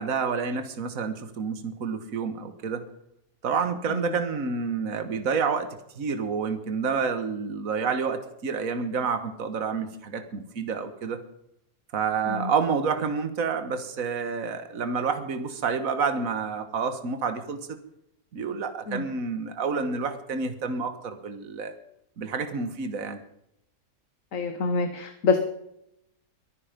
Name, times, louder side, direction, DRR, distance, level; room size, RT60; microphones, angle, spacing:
voice 1, 0.0-2.8 3.4-5.7 6.0-11.2 11.9-17.8 18.3-21.7 22.2-23.2, right 5 dB, 60° right, 9 dB, 1.9 m, -29 dB
voice 2, 24.3-25.4, left 4 dB, 55° left, 8 dB, 1.5 m, -26 dB
23.5 x 9.9 x 5.2 m, 0.80 s
omnidirectional pair, 1.7 m